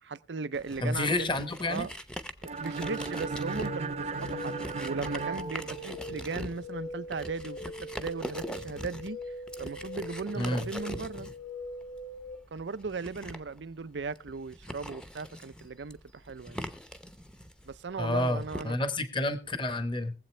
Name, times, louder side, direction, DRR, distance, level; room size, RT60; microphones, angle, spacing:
voice 1, 0.0-1.4 1.6-1.9 2.4-9.2 9.6-11.3 12.5-16.6 17.7-18.8, right 4 dB, 90° right, 0.6 m, -37 dB
sound 1, 0.5-18.6, equal, 5° left, 0.7 m, -43 dB
voice 2, 0.8-1.9 10.3-10.6 18.0-20.1, left 2 dB, 30° left, 1.0 m, -29 dB
sound 2, 2.5-6.4, right 4 dB, 40° right, 0.7 m, -37 dB
sound 3, 2.8-12.4, left 1 dB, 55° left, 1.3 m, -42 dB
21.5 x 7.8 x 3.2 m
head